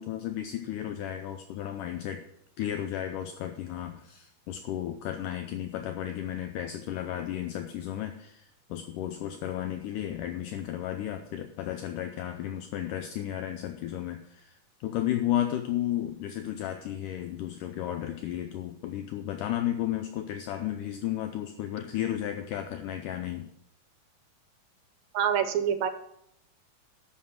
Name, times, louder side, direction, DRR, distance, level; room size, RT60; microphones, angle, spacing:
voice 1, 0.0-2.2 2.6-23.5, left 11 dB, 80° left, 7 dB, 2.0 m, -33 dB
voice 2, 25.1-25.9, right 8 dB, 80° right, 10 dB, 2.5 m, -26 dB
11.0 x 7.4 x 6.2 m, 0.75 s
omnidirectional pair, 4.2 m